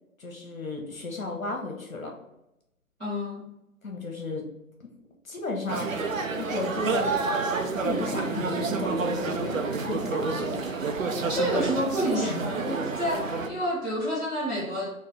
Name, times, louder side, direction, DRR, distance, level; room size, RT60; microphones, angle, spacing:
voice 1, 0.2-2.1 3.8-4.5 5.2-5.9 6.3-7.1 7.8-9.6 9.9-10.6, left 2 dB, 70° left, 1 dB, 1.2 m, -33 dB
voice 2, 3.0-3.5 11.3-14.9, equal, 5° right, -20 dB, 0.7 m, -29 dB
sound 1, 5.7-13.5, right 4 dB, 65° right, 0.6 m, -29 dB
3.8 x 2.3 x 3.8 m, 0.88 s
figure-of-eight pair, 150°, 43 cm